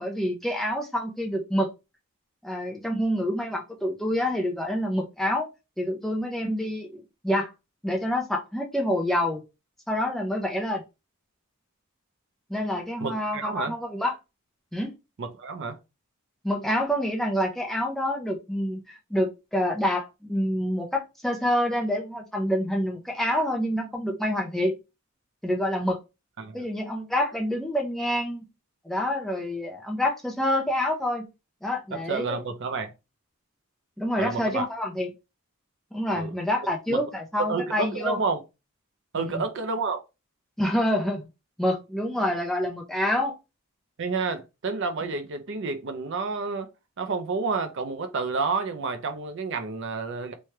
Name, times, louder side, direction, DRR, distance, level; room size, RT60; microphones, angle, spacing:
voice 1, 0.0-1.7 2.4-5.5 5.8-7.5 7.8-9.4 9.9-10.8 12.5-14.1 14.7-15.0 16.4-24.7 25.4-26.0 26.5-28.4 28.8-31.3 31.6-32.4 34.0-35.1 35.9-38.2 39.1-39.4 40.6-41.3 41.6-43.4, left 1 dB, ahead, 0.4 m, -27 dB
voice 2, 13.0-13.7 15.2-15.8 26.4-26.6 31.9-32.9 34.2-34.7 36.1-36.3 36.9-37.0 37.4-38.4 39.1-40.0 44.0-46.7 47.0-50.3, right 4 dB, 55° right, 0.5 m, -30 dB
3.1 x 2.2 x 2.9 m
head